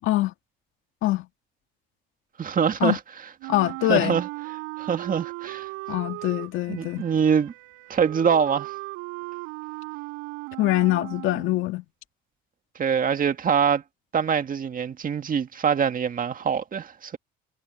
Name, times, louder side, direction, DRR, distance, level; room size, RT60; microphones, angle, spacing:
voice 1, 2.4-3.0 3.9-4.3 4.8-5.7 6.7-7.5 7.9-8.7 12.8-13.8 14.1-17.2, right 7 dB, 40° right, 2.0 m, -24 dB
Wind instrument woodwind instrument, 3.4-11.7, right 24 dB, 90° right, 4.7 m, -37 dB
voice 2, 3.5-4.2 5.9-7.1 10.6-11.8, left 16 dB, 75° left, 2.0 m, -23 dB
supercardioid pair, 80°, 21 cm